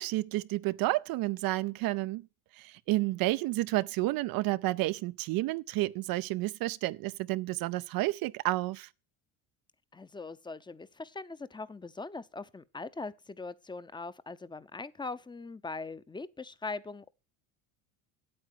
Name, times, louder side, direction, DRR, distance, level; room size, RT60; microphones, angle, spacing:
voice 1, 0.0-2.2 2.6-8.9, right 18 dB, 55° right, 0.5 m, -30 dB
voice 2, 9.9-17.1, left 3 dB, 10° left, 0.7 m, -41 dB
8.6 x 8.0 x 6.7 m
supercardioid pair, 90°, 44 cm